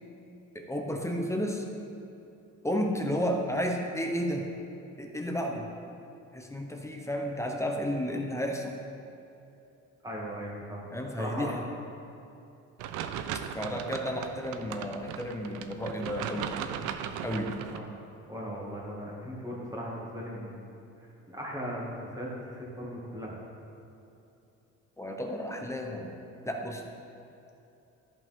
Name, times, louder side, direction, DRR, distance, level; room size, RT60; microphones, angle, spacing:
voice 1, 0.5-1.6 2.6-4.5 5.0-5.7 6.3-8.8 10.9-11.6 13.5-16.5 17.2-17.6 25.0-26.1 26.4-26.8, equal, 10° left, 2 dB, 0.9 m, -32 dB
voice 2, 10.0-10.9 11.2-11.6 17.7-17.8 18.2-23.4, equal, 10° right, -4 dB, 2.2 m, -38 dB
sound 1, 12.8-17.8, right 9 dB, 85° right, 0.6 m, -37 dB
13.5 x 5.5 x 3.7 m, 2.8 s
cardioid pair, 115°, 30 cm